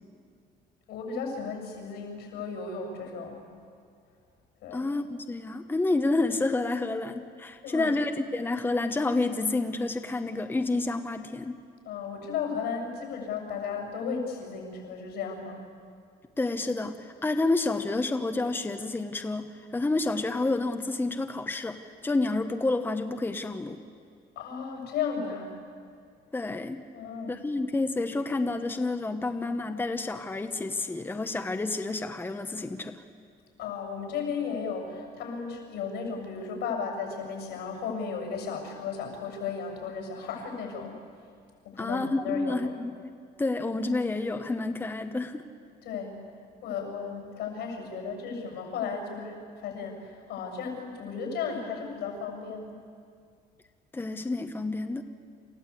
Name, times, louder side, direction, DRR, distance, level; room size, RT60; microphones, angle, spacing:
voice 1, 0.9-3.5 4.6-4.9 7.6-8.0 11.9-15.6 24.4-25.6 26.9-27.4 33.6-41.0 41.6-42.7 45.8-46.2 46.6-52.8, left 5 dB, 85° left, 2 dB, 7.0 m, -35 dB
voice 2, 4.7-11.6 16.4-21.8 22.0-23.8 26.3-26.8 27.3-33.0 41.8-45.4 53.9-55.0, left 2 dB, 10° left, 6 dB, 1.0 m, -29 dB
28.5 x 14.5 x 8.4 m, 2.3 s
cardioid pair, 110°, 17 cm